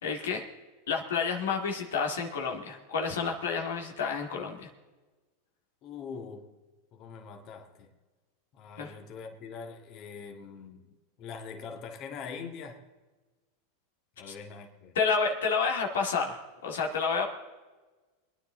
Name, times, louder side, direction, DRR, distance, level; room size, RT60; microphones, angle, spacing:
voice 1, 0.0-0.5 0.9-4.7 8.8-8.9 15.0-17.2, left 5 dB, 85° left, 2 dB, 2.1 m, -30 dB
voice 2, 5.8-6.5 6.9-7.9 8.5-12.8 14.2-14.9, left 5 dB, 45° left, 3 dB, 1.8 m, -43 dB
24.5 x 9.9 x 3.8 m, 1.3 s
hypercardioid pair, 120°, 0 cm